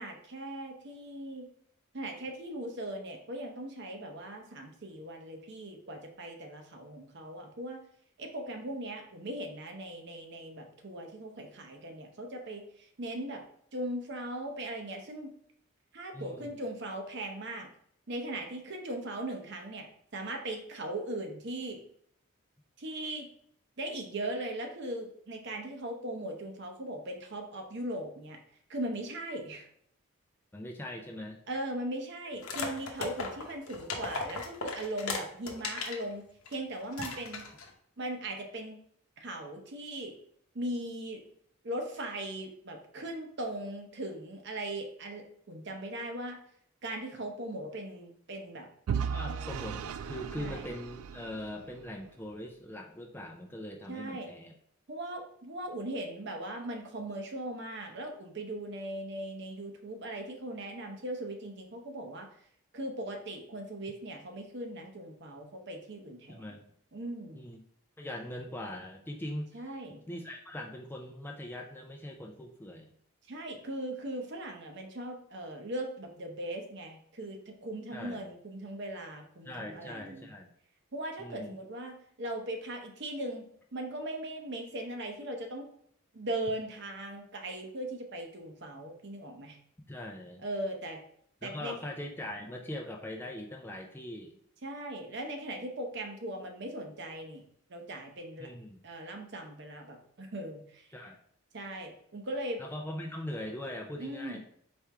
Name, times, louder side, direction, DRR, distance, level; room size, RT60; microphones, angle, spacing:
voice 1, 0.0-1.4 1.9-7.8 8.2-13.4 13.7-15.3 15.9-17.7 18.1-19.9 20.1-21.8 22.8-23.3 23.8-28.4 28.7-29.7 31.5-37.4 38.0-38.8 39.2-40.2 40.5-41.2 41.6-46.4 46.8-48.7 49.3-49.6 50.4-50.7 53.9-54.3 54.9-62.3 62.7-66.4 66.9-67.4 69.5-70.0 73.3-80.3 80.9-83.4 83.7-85.7 86.1-89.6 90.4-91.0 91.4-91.8 94.6-97.4 97.7-98.5 98.8-100.9 101.5-102.6 104.0-104.4, right 1 dB, 55° right, 3 dB, 0.8 m, -39 dB
voice 2, 16.1-16.5 30.5-31.4 49.1-54.5 66.3-66.6 67.4-67.6 68.0-69.6 69.9-72.9 77.9-78.2 79.4-80.5 81.2-81.6 89.9-90.4 91.4-94.4 98.4-98.8 100.9-101.2 102.6-104.4, left 1 dB, 10° left, 1 dB, 0.4 m, -41 dB
sound 1, 32.4-36.0 36.5-36.6 36.9-37.7, left 4 dB, 90° left, 0.8 m, -37 dB
Vehicle / Engine, 48.9-51.9, right 7 dB, 85° right, 0.3 m, -36 dB
4.4 x 3.5 x 3.5 m, 0.67 s
head